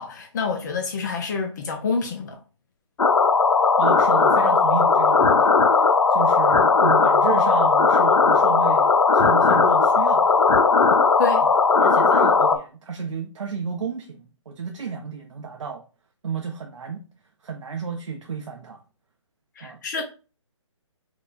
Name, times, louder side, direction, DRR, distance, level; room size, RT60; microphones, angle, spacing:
voice 1, 0.0-2.4 11.2-11.4 19.6-20.0, left 4 dB, 35° left, 0.5 m, -27 dB
sound 1, 3.0-12.6, left 4 dB, 85° left, 0.5 m, -17 dB
voice 2, 3.8-10.5 11.4-11.5 11.8-15.8 16.2-17.0 17.4-18.8 19.6-19.8, right 5 dB, 75° right, 0.6 m, -32 dB
4.5 x 2.2 x 2.4 m
figure-of-eight pair, 140°, 16 cm